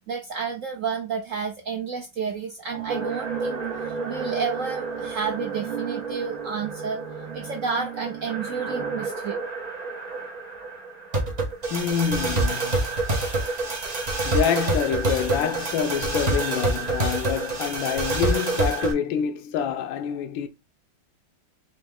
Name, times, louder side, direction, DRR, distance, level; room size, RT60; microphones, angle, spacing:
voice 1, 0.1-7.0 7.3-9.4, right 5 dB, 70° right, 0.7 m, -31 dB
sound 1, 2.7-9.1, right 12 dB, 50° right, 1.9 m, -37 dB
sound 2, 2.9-18.9, right 2 dB, 30° right, 0.8 m, -28 dB
voice 2, 11.7-12.9 14.2-20.5, left 8 dB, 85° left, 1.4 m, -26 dB
4.2 x 2.9 x 3.6 m
omnidirectional pair, 2.1 m